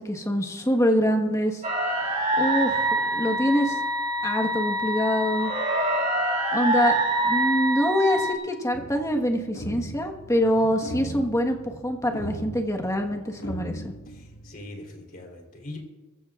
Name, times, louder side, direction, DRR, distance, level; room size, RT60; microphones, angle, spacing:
voice 1, 0.0-1.6 2.4-3.8 4.2-5.5 6.5-7.0 7.2-13.9, equal, 15° left, 2 dB, 1.4 m, -25 dB
sound 1, 1.6-8.3, right 1 dB, 35° right, 2.2 m, -25 dB
sound 2, 8.7-14.7, right 1 dB, 75° left, 1.7 m, -39 dB
voice 2, 14.1-15.8, left 1 dB, 45° left, 1 dB, 3.6 m, -42 dB
23.5 x 15.0 x 2.5 m, 1.2 s
head